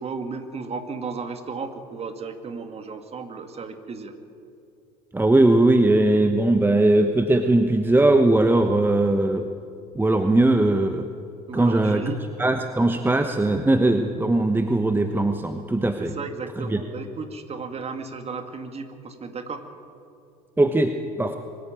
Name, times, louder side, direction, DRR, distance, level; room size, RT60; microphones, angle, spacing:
voice 1, 0.0-4.2 11.5-12.2 16.0-19.6, right 4 dB, 30° right, 7 dB, 2.2 m, -34 dB
voice 2, 5.1-9.4 9.9-11.0 11.5-12.0 12.4-16.1 16.7-16.8 20.6-21.4, right 2 dB, 10° right, 7 dB, 1.1 m, -19 dB
24.0 x 13.0 x 9.0 m, 2.5 s
figure-of-eight pair, 70°, 21 cm